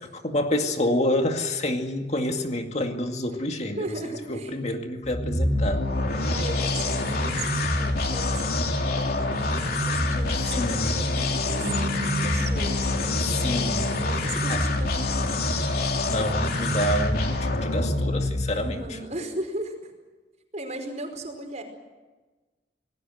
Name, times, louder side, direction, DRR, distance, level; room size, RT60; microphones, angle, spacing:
voice 1, 0.0-3.9 4.3-5.9 10.5-11.0 13.2-13.9 14.5-14.7 16.1-19.0, left 1 dB, 40° left, 4 dB, 2.2 m, -28 dB
voice 2, 3.7-4.5 6.3-12.9 13.3-15.3 18.5-19.9 20.5-21.6, right 1 dB, 40° right, 5 dB, 5.0 m, -37 dB
sound 1, 5.0-18.8, left 2 dB, 55° left, 3.2 m, -26 dB
Bass guitar, 11.6-17.9, left 1 dB, 90° right, 3.4 m, -39 dB
28.0 x 19.5 x 7.8 m, 1.2 s
head